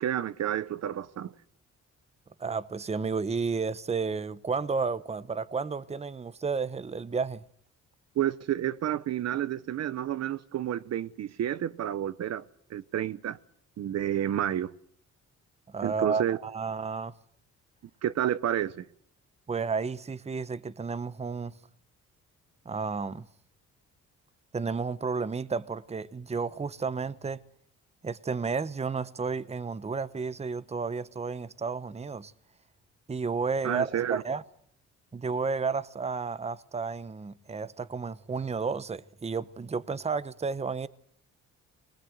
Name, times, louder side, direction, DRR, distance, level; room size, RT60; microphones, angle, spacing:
voice 1, 0.0-1.3 8.2-12.4 12.7-13.4 13.8-14.7 15.8-16.4 18.0-18.8 33.6-34.2, right 11 dB, 60° right, 0.8 m, -30 dB
voice 2, 2.4-7.4 15.7-17.1 19.5-21.5 22.6-23.3 24.5-27.4 28.0-32.3 33.1-34.4 35.1-40.9, right 5 dB, 20° right, 0.9 m, -32 dB
21.0 x 19.5 x 8.0 m
cardioid pair, 90°, 30 cm